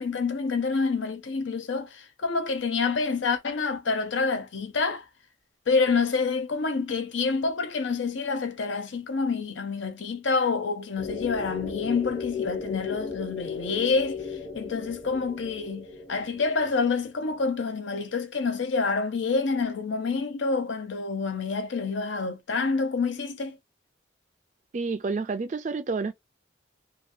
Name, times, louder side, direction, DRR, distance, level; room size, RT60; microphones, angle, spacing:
voice 1, 0.0-5.0 5.7-14.2 14.5-23.6, left 4 dB, 75° left, 0.6 m, -27 dB
sound 1, 11.0-17.5, left 5 dB, 30° left, 0.7 m, -36 dB
voice 2, 24.7-26.1, right 4 dB, 40° right, 0.3 m, -29 dB
2.8 x 2.3 x 2.6 m
head